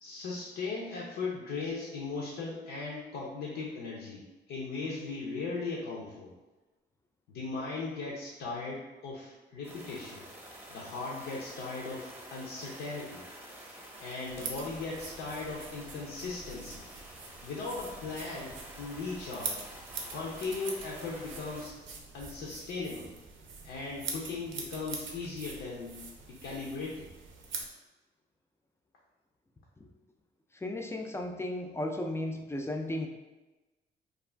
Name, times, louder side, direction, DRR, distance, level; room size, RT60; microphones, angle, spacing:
voice 1, 0.0-6.3 7.3-10.2 10.7-13.2 14.0-16.8 17.4-19.6 20.1-21.7 22.1-23.1 23.6-25.9 26.4-27.1, left 3 dB, 80° left, -4 dB, 0.6 m, -38 dB
sound 1, 9.6-21.7, right 1 dB, 10° right, 0.7 m, -49 dB
sound 2, 14.3-27.7, right 4 dB, 70° right, 0.6 m, -44 dB
voice 2, 30.5-33.1, left 1 dB, 15° left, 3 dB, 0.3 m, -35 dB
2.4 x 2.3 x 3.2 m, 1.1 s
cardioid pair, 90°, 20 cm